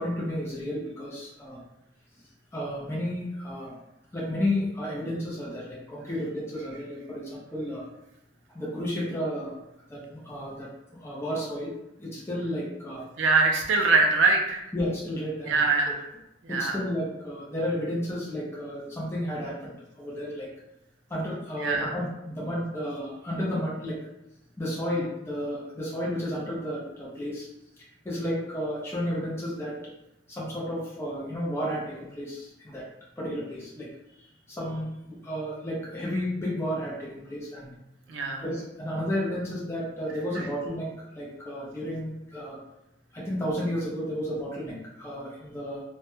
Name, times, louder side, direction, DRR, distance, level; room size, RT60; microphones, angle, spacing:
voice 1, 0.0-1.6 2.5-3.7 4.1-7.9 8.5-9.6 9.9-10.7 11.0-11.7 12.0-13.0 14.7-15.5 16.5-20.5 21.1-24.0 24.6-27.5 27.8-29.8 30.3-32.8 33.2-33.9 34.2-37.7 38.4-40.9 41.2-42.6 43.1-45.8, equal, 15° left, -5 dB, 0.4 m, -32 dB
voice 2, 13.2-14.6 15.5-16.0 16.4-16.8 21.6-21.9 38.1-38.4 40.3-40.5, right 3 dB, 80° right, 3 dB, 0.4 m, -23 dB
2.1 x 2.0 x 3.0 m, 0.89 s
head